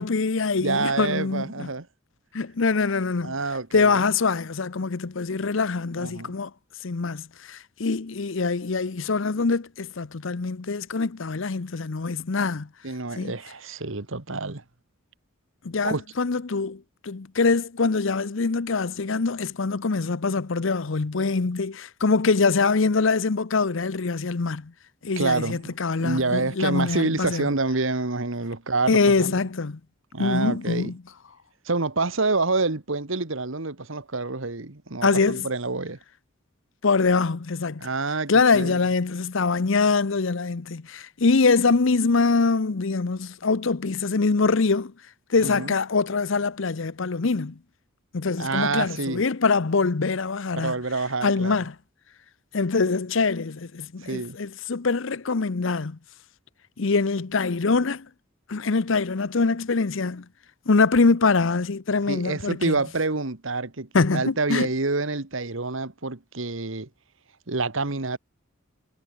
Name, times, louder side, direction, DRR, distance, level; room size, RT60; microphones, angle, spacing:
voice 1, 0.0-1.7 2.3-3.3 3.7-6.5 6.8-12.7 13.2-13.3 15.6-24.7 25.0-27.5 28.9-29.8 30.2-31.0 35.0-35.4 36.8-37.9 38.3-44.9 45.3-47.6 48.1-50.7 51.2-51.7 52.5-56.0 56.8-58.1 58.5-60.2 60.7-62.8 63.9-64.7, left 4 dB, 60° left, 0.7 m, -24 dB
voice 2, 0.6-1.9 3.2-4.0 6.0-6.3 12.8-14.6 15.8-16.0 25.2-29.4 30.1-30.9 31.6-36.0 37.8-38.8 45.4-45.7 48.4-49.2 50.6-51.7 54.0-54.4 62.1-66.9 67.5-68.2, right 3 dB, 65° right, 1.6 m, -27 dB
head